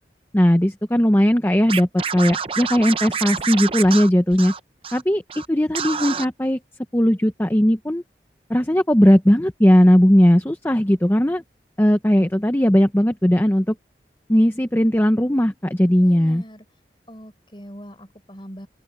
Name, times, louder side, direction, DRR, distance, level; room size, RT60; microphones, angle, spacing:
voice 1, 0.3-4.5 4.9-6.6 6.9-8.0 8.5-11.4 11.8-13.7 14.3-16.4, equal, 10° left, 0.7 m, -17 dB
Scratching (performance technique), 1.7-5.0 5.3-5.5 5.7-6.3, right 6 dB, 30° right, 0.6 m, -28 dB
voice 2, 16.0-16.6 17.1-18.7, equal, 30° left, 4.7 m, -41 dB
open air
head